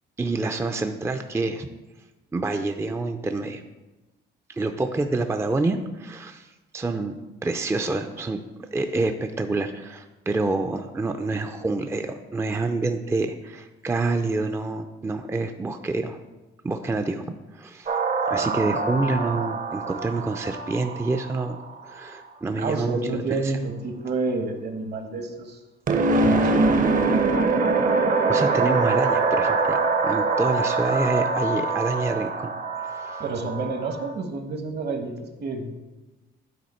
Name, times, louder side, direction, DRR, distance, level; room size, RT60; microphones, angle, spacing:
voice 1, 0.2-1.7 2.3-3.6 4.5-8.4 8.7-16.2 16.6-17.2 17.5-17.9 18.3-21.6 21.8-23.5 28.3-29.8 30.0-32.5 32.8-33.2, right 3 dB, 15° right, 6 dB, 0.4 m, -27 dB
sound 1, 17.9-22.1 25.9-34.1, right 3 dB, 45° right, 0.7 m, -24 dB
voice 2, 18.6-19.0 22.6-25.6 26.0-26.8 33.2-35.7, right 3 dB, 60° right, 5 dB, 1.1 m, -30 dB
9.3 x 3.8 x 4.3 m, 1.1 s
cardioid pair, 90°, 20 cm